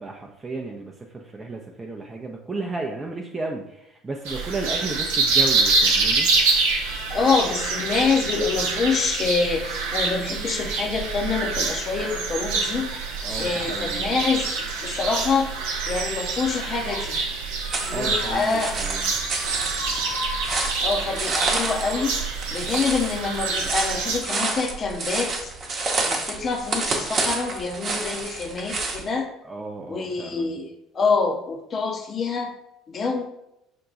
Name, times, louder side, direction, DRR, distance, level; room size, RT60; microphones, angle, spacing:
voice 1, 0.0-6.3 13.2-14.1 17.6-19.2 29.4-30.6, right 3 dB, 25° right, 0 dB, 0.5 m, -33 dB
sound 1, 4.3-24.2, right 4 dB, 75° right, 0.6 m, -26 dB
voice 2, 7.1-13.0 13.4-15.6 15.9-17.2 17.9-18.7 20.8-22.2 22.5-25.5 26.0-29.3 29.9-30.7 30.9-32.5 32.9-33.2, left 4 dB, 40° left, 2 dB, 0.7 m, -26 dB
sound 2, 12.1-12.4 12.8-13.1 13.4-13.6 14.0-15.9 16.4-17.0 17.6-18.6 18.8-22.4 23.4-23.5 24.2-24.6, left 3 dB, 70° left, 1.0 m, -40 dB
sound 3, 17.7-29.1, right 3 dB, 45° right, 0.8 m, -29 dB
5.2 x 2.2 x 3.9 m, 0.83 s
hypercardioid pair, 60°, 0 cm